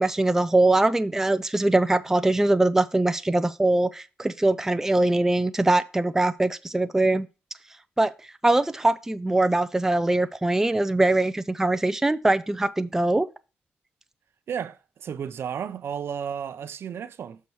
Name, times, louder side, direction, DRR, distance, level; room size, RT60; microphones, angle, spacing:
voice 1, 0.0-7.3 8.0-8.1 8.4-13.3, right 2 dB, 10° right, 0.4 m, -22 dB
voice 2, 14.5-17.4, right 8 dB, 65° right, 0.6 m, -33 dB
6.9 x 4.5 x 4.6 m
cardioid pair, 75°, 4 cm